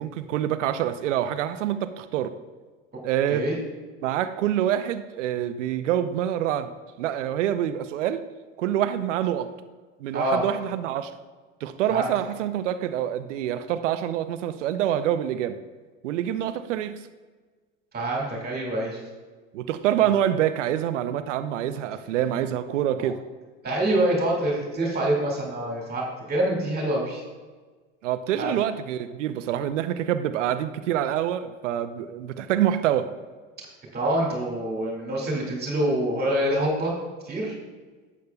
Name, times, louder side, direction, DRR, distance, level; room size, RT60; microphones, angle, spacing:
voice 1, 0.0-2.3 3.0-3.5 4.0-8.2 8.6-9.5 10.0-11.2 11.6-15.6 16.0-17.0 19.5-23.2 28.0-33.1, right 11 dB, 90° right, 0.6 m, -26 dB
voice 2, 17.9-19.0 23.0-23.1 23.6-27.2 28.4-28.5 33.9-36.9 37.2-37.5, right 1 dB, 25° right, 2.3 m, -26 dB
12.0 x 8.3 x 2.3 m
hypercardioid pair, 95°, 36 cm